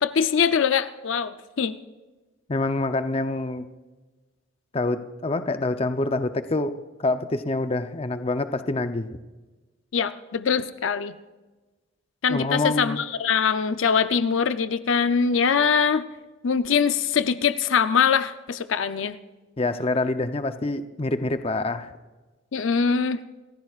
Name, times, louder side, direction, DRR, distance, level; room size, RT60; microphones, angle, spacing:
voice 1, 0.0-1.8 9.9-11.2 12.2-16.1 16.4-19.2 22.5-23.2, left 6 dB, 75° left, 11 dB, 0.6 m, -23 dB
voice 2, 2.5-3.7 4.7-6.7 7.0-9.2 12.3-13.0 19.6-21.9, left 2 dB, 30° left, 9 dB, 0.6 m, -26 dB
28.0 x 15.0 x 2.4 m, 1.2 s
head